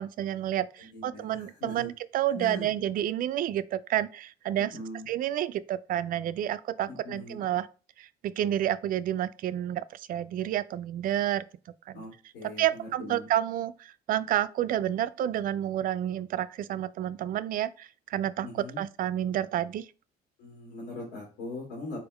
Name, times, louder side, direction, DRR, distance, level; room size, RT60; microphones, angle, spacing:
voice 1, 0.0-4.8 5.1-7.7 8.0-11.4 11.9-12.0 12.4-19.9, right 12 dB, 55° right, 0.4 m, -30 dB
voice 2, 0.8-1.9 2.3-2.7 4.7-5.0 6.9-7.4 11.9-13.3 18.4-18.8 20.4-22.0, left 2 dB, 90° left, 2.1 m, -41 dB
4.4 x 3.6 x 3.4 m
cardioid pair, 110°, 17 cm